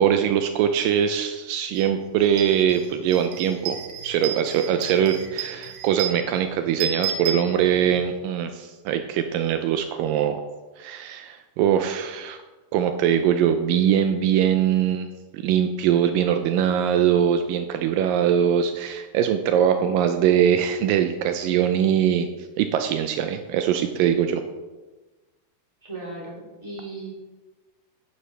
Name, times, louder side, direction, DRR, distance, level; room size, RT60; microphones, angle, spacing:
voice 1, 0.0-10.4 10.8-12.4 12.7-15.1 15.3-22.3 22.6-24.4, right 9 dB, 90° right, 7 dB, 1.9 m, -22 dB
sound 1, 1.8-1.9 2.2-8.1, right 8 dB, 75° right, 2.2 m, -33 dB
voice 2, 25.8-27.1, right 2 dB, 10° right, -6 dB, 3.0 m, -36 dB
11.0 x 9.7 x 3.4 m, 1.2 s
omnidirectional pair, 4.6 m